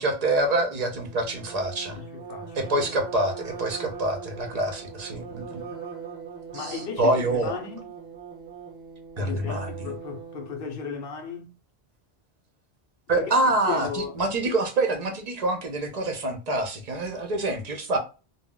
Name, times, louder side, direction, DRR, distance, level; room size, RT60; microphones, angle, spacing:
voice 1, 0.0-2.0 2.6-5.6 6.5-7.5 9.2-9.7 13.1-18.0, right 2 dB, 50° right, 0.5 m, -26 dB
sound 1, 0.9-10.5, right 6 dB, 10° right, 1.0 m, -41 dB
voice 2, 1.9-2.8 6.5-7.9 9.2-11.5 13.2-14.2 14.5-14.6, left 6 dB, 60° left, 0.7 m, -36 dB
2.1 x 2.0 x 3.6 m
omnidirectional pair, 1.1 m